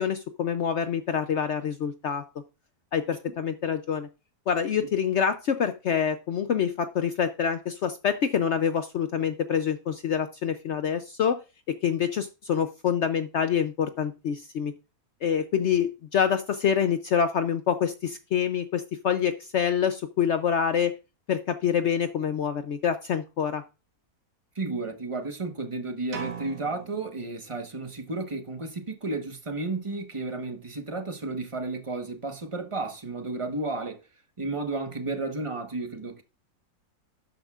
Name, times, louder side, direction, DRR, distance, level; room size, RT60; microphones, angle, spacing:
voice 1, 0.0-2.2 2.9-4.1 4.5-11.4 11.7-14.7 15.2-20.9 21.3-23.6, left 8 dB, 60° left, 0.8 m, -26 dB
voice 2, 24.5-34.0 34.4-36.2, right 3 dB, 20° right, 1.1 m, -32 dB
sound 1, 26.1-28.0, right 6 dB, 85° right, 2.0 m, -40 dB
12.0 x 8.9 x 2.4 m
omnidirectional pair, 1.6 m